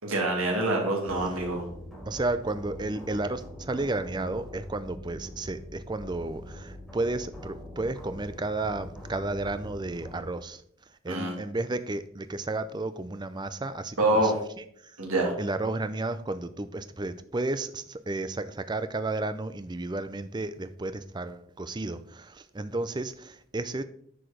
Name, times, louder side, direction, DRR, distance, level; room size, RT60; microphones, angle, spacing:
voice 1, 0.0-1.7 11.1-11.3 14.0-14.4 15.0-15.3, right 2 dB, 80° right, 0 dB, 2.5 m, -26 dB
sound 1, 1.1-10.2, left 1 dB, ahead, 2.9 m, -43 dB
voice 2, 2.1-10.6 11.0-14.3 14.6-15.0 15.4-23.8, right 2 dB, 20° right, 12 dB, 0.5 m, -32 dB
10.0 x 4.9 x 5.0 m, 0.65 s
head